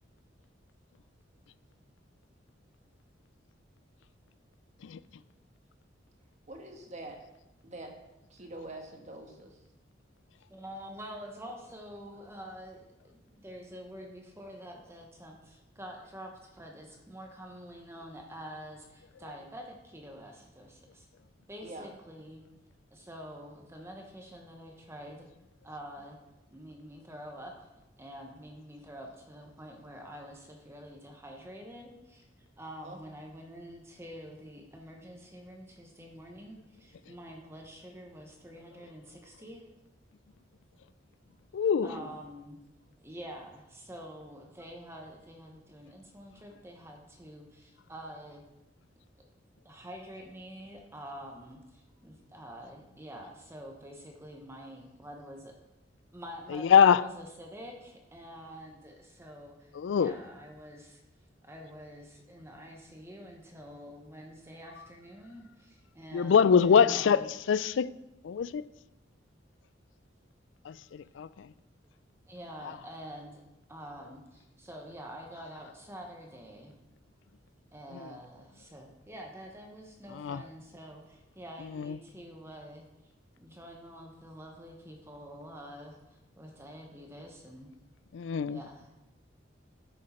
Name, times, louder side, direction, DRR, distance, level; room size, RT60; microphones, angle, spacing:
voice 1, 6.5-7.2 7.6-7.9 8.3-9.6 21.6-22.0 32.8-33.0 41.8-42.1, right 1 dB, 40° right, 1.4 m, -44 dB
voice 2, 10.5-21.1 21.5-22.4 22.9-25.3 25.6-26.2 26.5-27.7 28.0-32.2 32.6-39.6 41.8-42.6 43.0-48.4 49.6-55.5 56.1-61.0 61.4-67.3 72.3-73.4 73.7-76.7 77.7-82.8 83.4-86.0 86.4-87.7 88.5-88.9, equal, 15° right, 1.0 m, -47 dB
voice 3, 41.5-41.9 56.7-57.0 59.8-60.1 66.1-67.9 68.2-68.6 70.7-70.8 71.2-71.3 80.2-80.4 81.8-82.0 88.1-88.6, left 7 dB, 80° left, 0.3 m, -23 dB
9.8 x 6.4 x 4.3 m
head